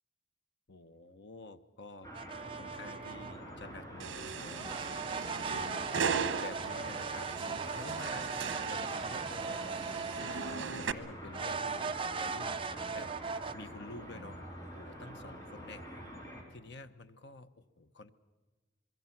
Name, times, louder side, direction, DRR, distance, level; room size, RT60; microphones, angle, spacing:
voice 1, 0.7-2.1 2.6-5.0 5.5-5.9 6.4-14.4 14.8-15.9 16.5-17.5 17.8-18.1, left 2 dB, 60° left, 10 dB, 0.9 m, -50 dB
sound 1, 2.0-16.4, equal, 20° left, 4.1 m, -46 dB
sound 2, 2.1-3.4 4.5-10.7 11.3-13.5, right 5 dB, 25° right, 0.6 m, -38 dB
sound 3, 4.0-10.9, right 6 dB, 80° right, 0.9 m, -38 dB
25.5 x 22.0 x 5.9 m, 1.3 s
head